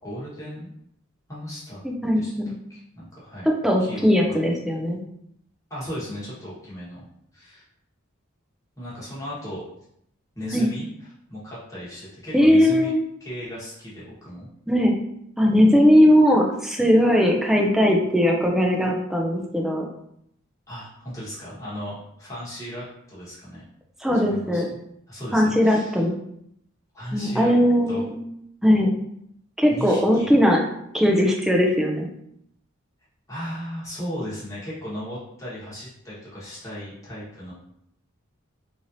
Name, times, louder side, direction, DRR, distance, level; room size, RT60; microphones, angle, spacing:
voice 1, 0.0-0.7 1.3-1.8 2.1-2.3 2.7-3.5 3.8-4.4 5.7-7.0 7.3-7.6 8.8-9.6 10.3-10.8 11.3-12.9 13.2-14.5 20.7-23.6 24.3-24.8 25.1-26.0 26.9-27.5 27.9-28.0 29.7-30.3 33.3-37.5, equal, 15° left, -9 dB, 1.2 m, -36 dB
voice 2, 1.8-2.5 3.5-5.0 10.5-10.7 12.3-13.0 14.7-14.9 15.4-19.9 24.0-24.7 25.3-26.1 27.1-28.2 28.6-28.9 29.6-30.6 30.9-32.1, equal, ahead, 0 dB, 0.4 m, -19 dB
3.2 x 2.7 x 2.6 m, 0.74 s
head